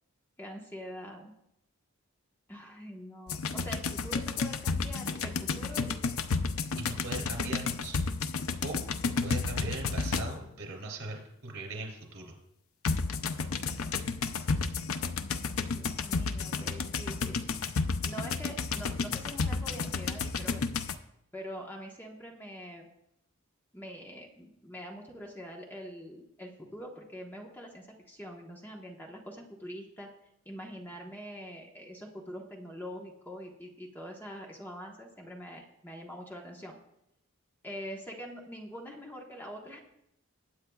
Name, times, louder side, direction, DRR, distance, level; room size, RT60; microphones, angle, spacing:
voice 1, 0.4-1.3 2.5-6.1 15.7-17.4 18.0-20.7 21.3-22.9 23.7-30.1 30.4-36.8 37.6-39.8, equal, 10° left, 0 dB, 1.2 m, -44 dB
sound 1, 3.3-10.5 12.8-20.9, left 4 dB, 75° left, 0.6 m, -32 dB
voice 2, 6.7-8.2 8.6-8.8 9.2-12.4, right 2 dB, 80° right, 1 dB, 3.1 m, -39 dB
20.5 x 8.6 x 2.4 m, 0.80 s
head